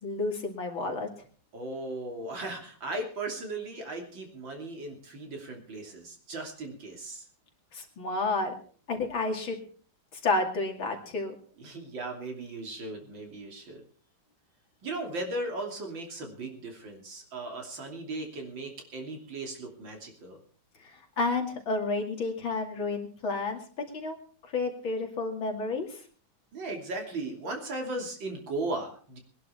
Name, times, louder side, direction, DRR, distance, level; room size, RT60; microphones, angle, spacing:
voice 1, 0.0-1.1 7.7-8.5 8.9-9.6 10.1-11.3 20.8-24.2 24.5-26.0, left 3 dB, 85° left, 2 dB, 3.4 m, -31 dB
voice 2, 1.5-7.3 11.6-13.8 14.8-20.4 26.5-29.2, right 2 dB, 70° right, 2 dB, 3.7 m, -37 dB
21.5 x 11.0 x 4.4 m, 0.43 s
omnidirectional pair, 2.1 m